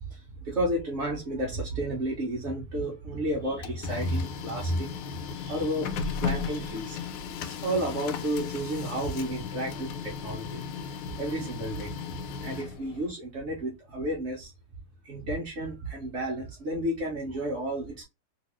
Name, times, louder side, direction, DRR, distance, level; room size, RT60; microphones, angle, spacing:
voice 1, 0.4-4.9 5.3-7.0 7.6-10.6 11.2-11.9 12.4-14.5 15.0-18.0, right 1 dB, 50° right, 0.8 m, -31 dB
Printer, 3.3-13.1, left 6 dB, 85° left, 1.6 m, -36 dB
3.2 x 3.1 x 3.0 m
omnidirectional pair, 2.4 m